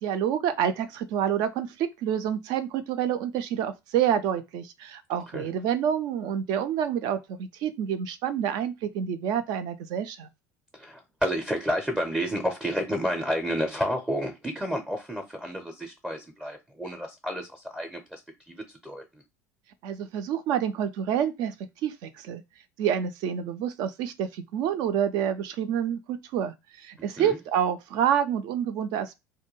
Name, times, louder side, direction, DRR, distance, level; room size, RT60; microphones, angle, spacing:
voice 1, 0.0-10.3 19.8-21.5 21.8-22.4 22.8-29.2, right 9 dB, 50° right, 0.4 m, -28 dB
voice 2, 10.8-18.2 18.5-18.6 18.8-19.0 27.2-27.4, equal, 10° right, 0.6 m, -30 dB
2.3 x 2.2 x 3.0 m
figure-of-eight pair, 70°, 9 cm